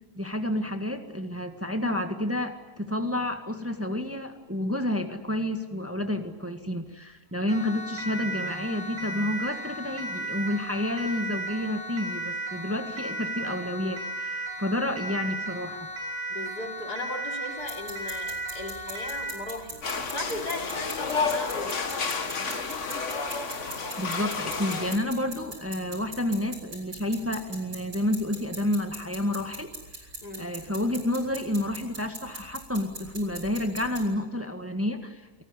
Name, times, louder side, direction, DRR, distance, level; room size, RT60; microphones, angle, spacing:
voice 1, 0.1-15.9 24.0-29.7 30.4-35.4, left 1 dB, 10° right, 6 dB, 1.7 m, -30 dB
Siren, 7.5-19.5, right 1 dB, 55° right, 5.7 m, -35 dB
voice 2, 16.3-22.5 30.2-30.5, left 2 dB, 80° left, 3 dB, 4.0 m, -37 dB
sound 1, 17.6-34.0, right 2 dB, 80° right, 5.9 m, -43 dB
sound 2, 19.8-25.0, left 4 dB, 50° left, 2.0 m, -31 dB
27.0 x 19.5 x 9.9 m, 1.3 s
omnidirectional pair, 1.7 m